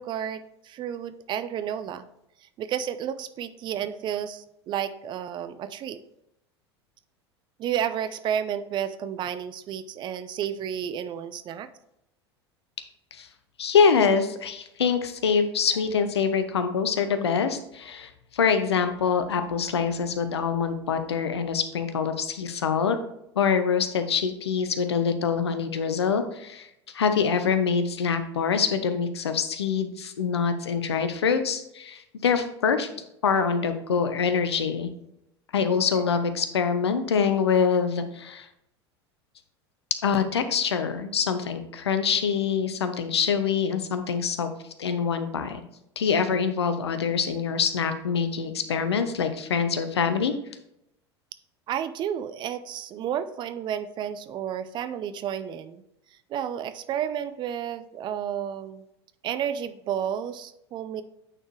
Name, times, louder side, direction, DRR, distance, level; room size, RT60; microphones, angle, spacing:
voice 1, 0.0-2.1 2.6-6.0 7.6-11.7 51.7-55.8 56.3-58.8 59.2-61.0, right 9 dB, 35° right, 12 dB, 0.5 m, -31 dB
voice 2, 13.6-23.0 23.4-26.7 26.9-32.9 33.2-34.9 35.5-38.5 40.0-44.5 44.8-45.6 46.0-50.3, left 6 dB, 75° left, 9 dB, 0.7 m, -25 dB
8.8 x 4.3 x 3.2 m, 0.81 s
figure-of-eight pair, 80°, 14 cm